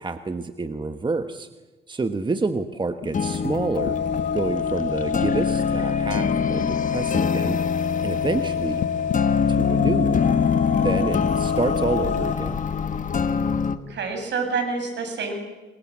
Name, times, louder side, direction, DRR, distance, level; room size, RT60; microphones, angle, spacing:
voice 1, 0.0-1.5 1.9-4.0 4.3-7.6 8.0-8.8 9.5-10.2 10.8-12.6, right 3 dB, 25° right, 8 dB, 1.3 m, -28 dB
sound 1, 3.0-13.8, left 6 dB, 40° left, 1.6 m, -25 dB
sound 2, 3.8-12.4, left 7 dB, 65° left, 1.3 m, -27 dB
voice 2, 13.7-15.4, right 4 dB, 65° right, 5 dB, 7.2 m, -28 dB
28.5 x 23.5 x 7.5 m, 1.2 s
cardioid pair, 90°, 20 cm